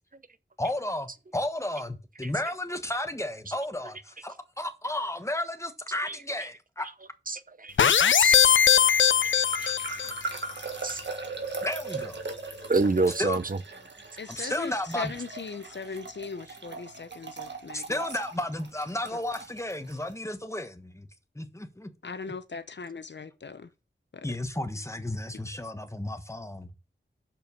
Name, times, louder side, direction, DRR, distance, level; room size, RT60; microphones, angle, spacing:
voice 1, 0.6-6.9 11.6-12.2 13.2-13.4 14.3-15.1 15.9-16.0 16.5-16.6 17.7-21.1 21.3-21.9 24.2-26.7, left 1 dB, 15° left, 1.3 m, -33 dB
voice 2, 7.3-8.4 8.7-9.7 10.8-11.0 12.7-13.6 14.4-14.5, right 3 dB, 45° right, 0.7 m, -29 dB
sound 1, 7.8-10.2, left 8 dB, 90° left, 0.4 m, -20 dB
sound 2, 9.2-20.0, right 3 dB, 70° right, 1.7 m, -39 dB
voice 3, 14.2-18.0 22.0-23.7 24.1-24.3, left 4 dB, 65° left, 0.8 m, -39 dB
7.0 x 5.5 x 6.9 m
wide cardioid pair, 75°, 19 cm